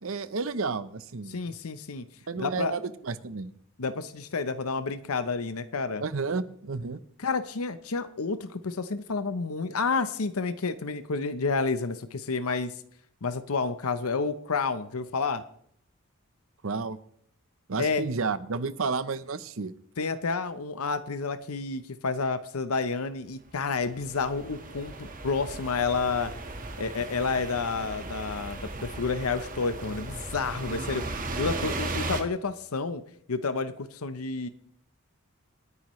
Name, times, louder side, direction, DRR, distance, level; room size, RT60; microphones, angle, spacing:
voice 1, 0.0-1.4 2.3-3.5 6.0-7.0 16.6-17.0 17.7-19.7, right 4 dB, 65° right, 14 dB, 0.7 m, -31 dB
voice 2, 1.3-2.0 2.4-2.8 3.8-6.0 7.2-12.7 13.2-15.4 17.8-18.0 20.0-26.3 26.8-33.0 33.3-34.5, left 4 dB, 85° left, 11 dB, 0.8 m, -30 dB
sound 1, 23.5-23.6 23.8-32.2, right 2 dB, 40° right, 1.5 m, -36 dB
27.5 x 9.7 x 3.1 m, 0.68 s
head